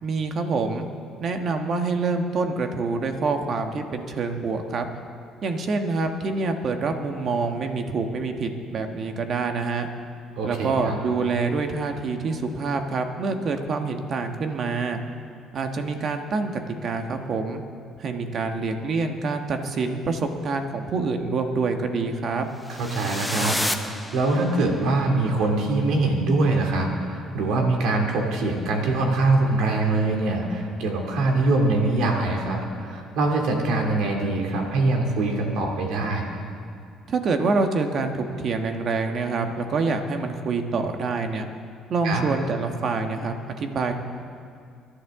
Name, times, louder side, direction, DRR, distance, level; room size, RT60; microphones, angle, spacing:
voice 1, 0.0-0.9 1.2-4.9 5.4-9.9 10.4-15.0 15.5-17.6 18.0-22.5 37.1-41.5 41.9-43.9, right 4 dB, 50° right, 5 dB, 1.4 m, -26 dB
voice 2, 10.4-11.0 22.7-36.3 42.0-42.3, right 2 dB, 80° right, 2 dB, 2.5 m, -23 dB
sound 1, 22.6-24.8, left 1 dB, 5° left, 0.9 m, -30 dB
24.5 x 11.5 x 3.7 m, 2.3 s
cardioid pair, 95°, 0 cm